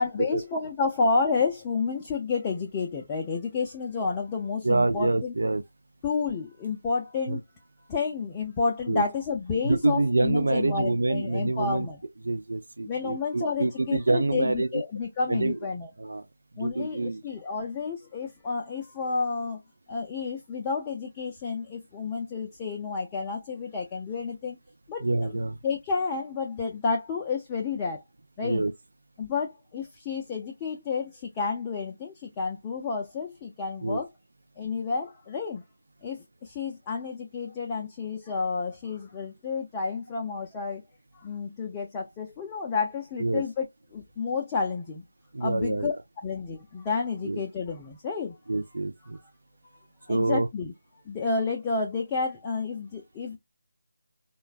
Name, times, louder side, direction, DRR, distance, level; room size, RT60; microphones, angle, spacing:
voice 1, 0.0-5.3 6.0-7.4 7.9-12.0 12.8-15.9 16.6-19.6 19.9-24.6 24.9-28.0 28.4-28.6 29.2-34.1 34.6-35.6 36.0-40.8 41.1-45.0 45.4-45.9 46.2-48.4 50.1-50.7 51.1-53.4, left 4 dB, 15° left, 0.5 m, -30 dB
voice 2, 4.6-5.6 7.3-7.4 8.9-9.0 9.6-11.9 12.2-14.8 15.3-15.6 16.0-16.3 16.6-17.2 25.0-25.6 28.4-28.7 33.8-34.0 43.2-43.4 45.3-45.9 47.2-47.4 48.5-49.2 50.1-50.5, right 2 dB, 65° right, 0.3 m, -26 dB
3.8 x 2.1 x 2.4 m
figure-of-eight pair, 155°, 0 cm